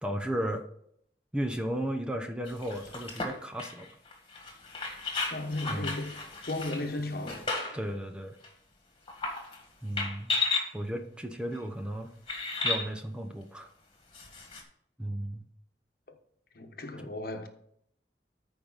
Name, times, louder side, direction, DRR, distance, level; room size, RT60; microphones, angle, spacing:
voice 1, 0.0-0.6 1.3-3.9 5.7-6.0 7.7-8.4 9.8-10.3 10.7-12.1 12.6-13.7 15.0-15.4 17.0-17.1, right 1 dB, 5° right, 0.7 m, -34 dB
sound 1, 2.5-7.9 8.4-8.5 9.1-9.6 10.0-10.7 11.5-11.6 12.3-12.9 14.1-14.6, left 3 dB, 30° left, 1.8 m, -34 dB
voice 2, 5.3-6.2 6.5-7.4 16.1-16.2 16.5-17.5, left 2 dB, 55° left, 1.1 m, -35 dB
14.0 x 5.2 x 4.0 m
head